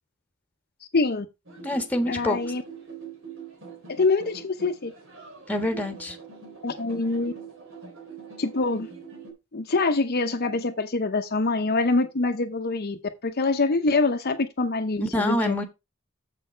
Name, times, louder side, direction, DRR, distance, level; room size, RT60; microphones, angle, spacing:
voice 1, 0.9-1.3 2.1-2.6 3.9-4.9 6.6-7.3 8.4-8.9 9.5-15.6, left 3 dB, 45° left, 0.8 m, -25 dB
sound 1, 1.5-9.3, right 5 dB, 65° right, 3.4 m, -43 dB
voice 2, 1.6-2.4 5.5-6.2 15.0-15.6, left 1 dB, 5° left, 1.4 m, -26 dB
7.5 x 6.7 x 4.5 m
head